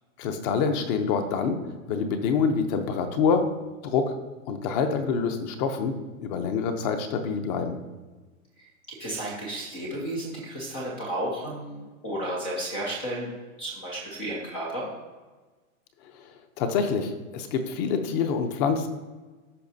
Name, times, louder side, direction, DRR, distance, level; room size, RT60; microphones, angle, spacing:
voice 1, 0.2-1.6 1.9-3.5 3.8-4.1 4.5-7.8 16.0-16.2 16.6-18.9, left 5 dB, 30° left, 7 dB, 0.7 m, -26 dB
voice 2, 9.0-13.3 13.6-14.9, right 1 dB, 10° left, -4 dB, 0.3 m, -33 dB
14.0 x 5.1 x 2.7 m, 1.3 s
hypercardioid pair, 145°, 41 cm